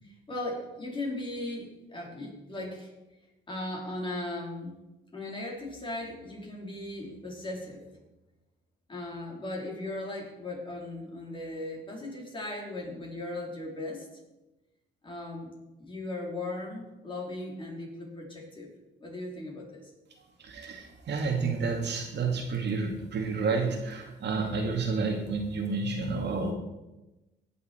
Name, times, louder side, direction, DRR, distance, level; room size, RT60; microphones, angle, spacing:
voice 1, 0.0-2.9 3.5-4.8 5.1-7.8 8.9-14.1 15.0-15.5 15.8-18.7 19.0-19.9, left 2 dB, 25° left, -2 dB, 4.6 m, -37 dB
voice 2, 20.4-26.5, right 4 dB, 60° right, 2 dB, 2.4 m, -30 dB
18.5 x 6.9 x 4.7 m, 1.0 s
cardioid pair, 90°, 20 cm